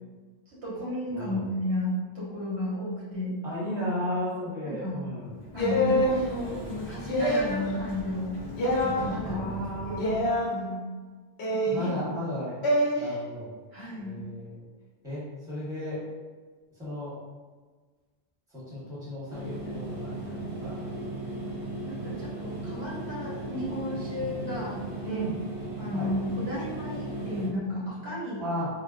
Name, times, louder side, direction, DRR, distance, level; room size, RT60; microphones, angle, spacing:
voice 1, 0.6-3.4 4.6-5.0 5.5-8.3 8.8-9.5 9.8-10.8 11.5-11.9 13.7-14.2 21.4-21.5 21.9-25.2 25.8-28.4, left 1 dB, 85° right, -7 dB, 1.4 m, -33 dB
voice 2, 3.4-5.3 9.2-10.3 11.6-12.6 13.0-13.5 14.0-14.6 15.0-16.0 16.8-17.1 18.5-20.8 25.0-25.4 25.9-26.1 28.4-28.7, equal, 5° right, -9 dB, 1.0 m, -34 dB
Sliding door, 5.2-10.5, equal, 50° left, 0.9 m, -40 dB
sound 1, 5.6-6.2 7.0-7.7 8.6-9.0 10.0-10.5 11.4-11.9 12.6-13.0, left 1 dB, 80° left, 1.0 m, -25 dB
sound 2, 19.3-27.5, right 2 dB, 60° right, 0.9 m, -36 dB
3.7 x 2.1 x 2.4 m, 1.4 s
omnidirectional pair, 1.1 m